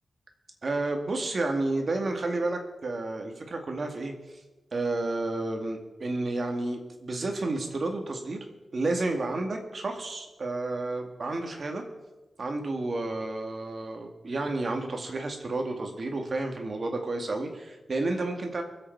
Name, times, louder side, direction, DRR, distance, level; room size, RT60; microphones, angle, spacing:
voice 1, 0.6-4.1 4.7-8.4 8.7-11.8 12.4-18.6, right 2 dB, 50° right, 3 dB, 2.1 m, -31 dB
24.0 x 8.1 x 4.7 m, 1.1 s
wide cardioid pair, 135°, 0 cm